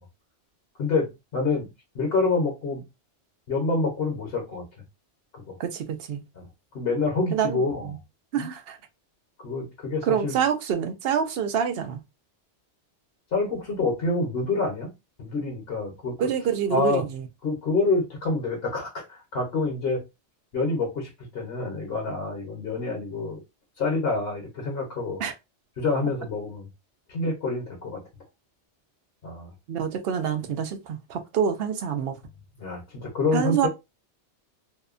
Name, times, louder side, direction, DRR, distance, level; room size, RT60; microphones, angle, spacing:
voice 1, 0.8-1.7 1.9-2.8 3.5-4.6 5.3-5.5 6.4-6.5 6.7-7.9 8.4-8.5 9.4-10.4 13.3-14.9 15.2-16.1 16.7-17.0 17.4-20.0 20.5-23.4 23.8-25.2 25.8-26.7 27.1-28.0 29.2-29.5 32.6-33.7, left 3 dB, 60° left, 1.1 m, -27 dB
voice 2, 5.6-6.2 7.3-8.0 8.3-8.8 10.0-12.0 16.2-17.3 25.2-25.3 29.7-32.2 33.3-33.7, right 7 dB, 65° right, 0.7 m, -27 dB
2.7 x 2.1 x 2.4 m
omnidirectional pair, 1.2 m